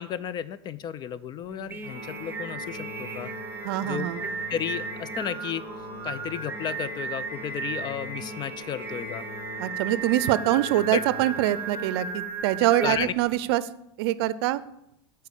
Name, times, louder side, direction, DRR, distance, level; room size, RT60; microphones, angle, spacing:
voice 1, 0.0-3.3 3.8-4.1 4.5-5.6 6.0-9.2 10.9-11.0 12.8-13.1, left 9 dB, 30° left, 16 dB, 0.4 m, -33 dB
Singing, 1.5-13.2, right 4 dB, 15° right, 1.0 m, -36 dB
Organ, 1.8-12.7, left 2 dB, 60° left, 1.9 m, -42 dB
voice 2, 3.6-4.3 9.6-13.6 14.0-14.6, right 14 dB, 65° right, 16 dB, 0.5 m, -24 dB
8.0 x 4.6 x 6.9 m, 0.79 s
hypercardioid pair, 110°, 14 cm